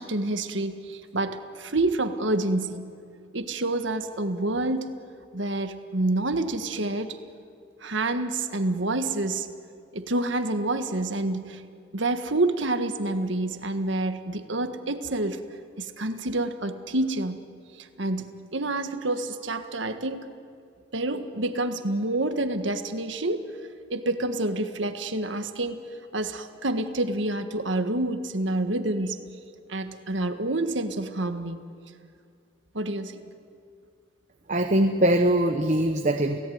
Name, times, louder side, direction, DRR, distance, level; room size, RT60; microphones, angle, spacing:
voice 1, 0.0-2.8 3.3-4.9 5.3-7.2 7.8-9.5 9.9-11.6 11.9-15.4 15.8-17.4 17.8-20.3 20.9-23.5 23.9-25.8 26.1-29.2 29.7-31.6 32.7-33.2, right 2 dB, 70° right, 8 dB, 1.6 m, -28 dB
voice 2, 34.5-36.4, right 1 dB, 40° right, 5 dB, 1.1 m, -22 dB
29.5 x 17.5 x 9.5 m, 2.3 s
head